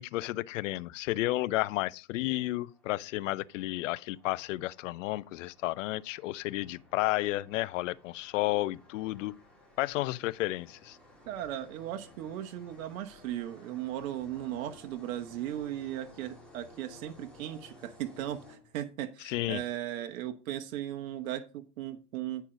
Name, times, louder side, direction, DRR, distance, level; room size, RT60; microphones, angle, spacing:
voice 1, 0.0-9.3 9.8-11.0 19.3-19.6, left 17 dB, 50° left, 0.6 m, -32 dB
sound 1, 2.3-19.1, left 2 dB, ahead, 2.4 m, -57 dB
voice 2, 11.2-22.4, right 12 dB, 60° right, 1.1 m, -37 dB
9.7 x 4.6 x 5.0 m
hypercardioid pair, 120°, 48 cm